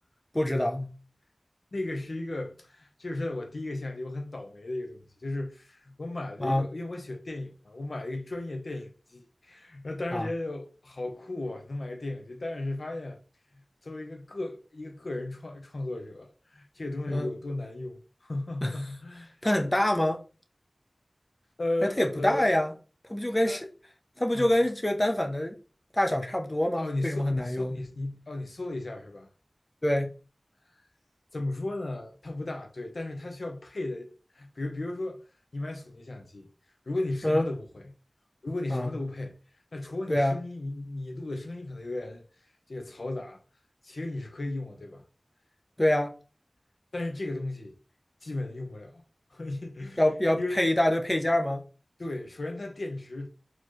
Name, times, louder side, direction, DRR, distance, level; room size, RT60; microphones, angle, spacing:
voice 1, 0.3-0.9 6.4-6.7 10.1-10.3 17.1-17.3 18.6-18.7 19.4-20.2 21.8-22.7 23.1-23.7 24.2-25.6 25.9-27.8 29.8-30.1 37.2-37.5 38.7-38.9 40.1-40.4 45.8-46.1 50.0-51.6, left 1 dB, 25° left, 0.6 m, -25 dB
voice 2, 1.7-13.2 13.8-19.4 21.6-22.5 23.4-23.6 24.3-24.6 26.8-29.3 31.3-35.2 35.5-36.5 36.9-37.9 38.4-39.4 39.7-42.2 42.7-43.4 43.8-45.0 46.9-47.8 48.2-49.0 49.3-50.6 52.0-53.3, left 2 dB, 90° left, 0.6 m, -35 dB
4.3 x 2.9 x 3.0 m
wide cardioid pair, 60°, 0 cm